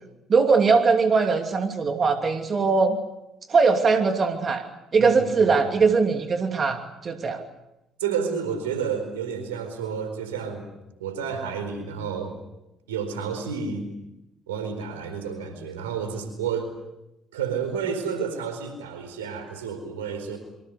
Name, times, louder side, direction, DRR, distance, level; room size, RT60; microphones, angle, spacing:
voice 1, 0.3-3.0 3.5-4.6 4.9-7.4, right 4 dB, 40° right, 5 dB, 2.8 m, -21 dB
voice 2, 5.0-5.5 8.0-10.7 11.0-12.4 12.9-13.9 14.5-16.7 17.3-20.4, right 6 dB, 85° right, 8 dB, 4.4 m, -30 dB
27.0 x 25.0 x 6.7 m, 0.90 s
hypercardioid pair, 50°, 0 cm